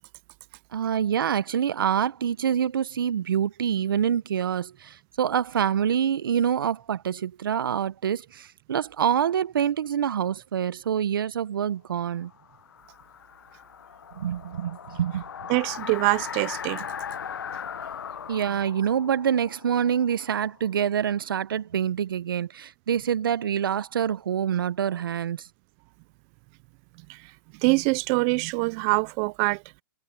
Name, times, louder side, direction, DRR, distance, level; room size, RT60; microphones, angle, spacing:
voice 1, 0.7-12.3 14.1-15.2 18.3-25.5, right 8 dB, 80° right, 0.9 m, -26 dB
sound 1, 12.2-20.9, left 8 dB, 90° left, 1.0 m, -39 dB
voice 2, 15.5-16.9 27.1-27.3 27.6-29.8, right 29 dB, 30° right, 0.4 m, -24 dB
hypercardioid pair, 145°, 11 cm